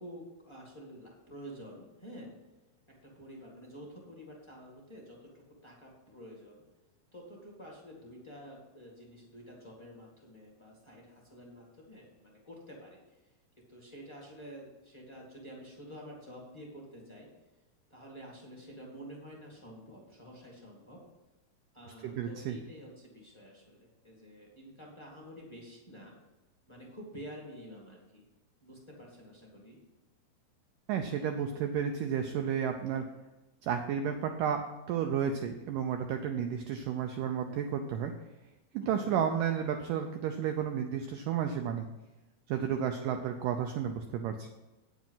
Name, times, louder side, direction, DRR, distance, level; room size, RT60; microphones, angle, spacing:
voice 1, 0.0-2.3 3.0-6.6 7.1-13.0 13.7-17.3 17.9-21.0 21.7-26.1 26.7-28.2 28.6-29.8 32.8-33.2 38.8-39.3 42.7-43.0, equal, 15° left, -2 dB, 1.1 m, -49 dB
voice 2, 22.0-22.6 30.9-33.1 33.6-34.6 34.9-38.1 38.7-41.9 42.5-44.5, right 8 dB, 85° right, 5 dB, 1.9 m, -32 dB
9.1 x 7.3 x 5.7 m, 1.1 s
omnidirectional pair, 4.6 m